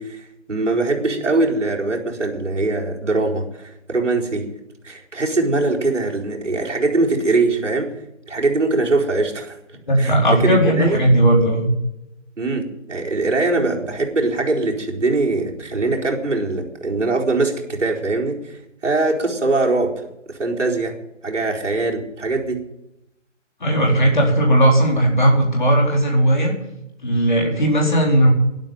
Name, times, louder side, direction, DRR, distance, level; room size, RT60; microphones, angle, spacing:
voice 1, 0.0-4.5 4.8-7.9 8.3-9.6 10.0-11.0 12.4-20.0 20.3-21.0 21.2-22.6, right 3 dB, 70° right, -1 dB, 4.5 m, -22 dB
voice 2, 9.9-11.7 23.6-26.5 27.0-28.3, right 1 dB, 40° left, 0 dB, 4.3 m, -16 dB
12.5 x 11.0 x 9.4 m, 0.87 s
figure-of-eight pair, 180°, 37 cm